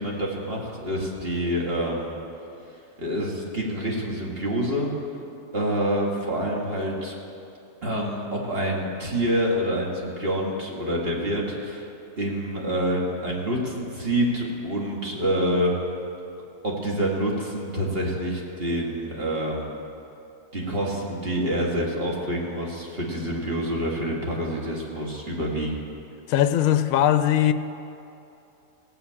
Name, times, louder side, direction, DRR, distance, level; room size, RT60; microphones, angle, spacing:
voice 1, 0.0-2.2 3.0-4.9 5.5-7.1 7.8-11.9 12.2-15.7 16.6-19.8 20.5-25.8, equal, 40° right, -3 dB, 2.1 m, -27 dB
voice 2, 26.3-27.5, left 11 dB, 70° left, 11 dB, 0.9 m, -20 dB
16.0 x 5.7 x 8.6 m, 2.7 s
omnidirectional pair, 1.6 m